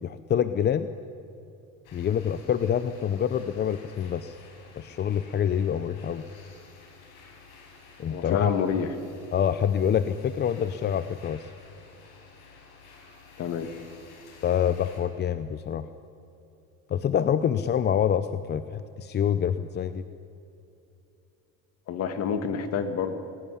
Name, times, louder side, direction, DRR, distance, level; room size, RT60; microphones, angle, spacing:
voice 1, 0.0-0.9 1.9-4.4 4.8-6.2 8.0-8.5 9.3-11.5 14.4-15.9 16.9-20.0, left 9 dB, 30° left, 12 dB, 0.7 m, -26 dB
sound 1, 1.8-15.0, left 4 dB, 80° left, 5.9 m, -52 dB
voice 2, 8.1-8.9 13.4-13.7 21.9-23.1, left 7 dB, 50° left, 9 dB, 2.1 m, -28 dB
23.0 x 17.5 x 10.0 m, 2.8 s
cardioid pair, 135°, 32 cm